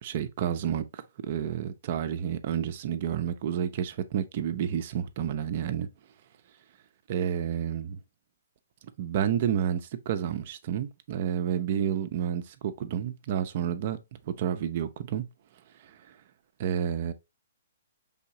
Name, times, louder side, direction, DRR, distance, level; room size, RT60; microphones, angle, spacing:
voice 1, 0.0-5.9 7.1-8.0 9.0-14.0 14.3-15.3 15.8-16.0 16.6-17.1, right 9 dB, 45° right, 0.5 m, -30 dB
4.5 x 3.5 x 2.8 m
figure-of-eight pair, 125°, 0 cm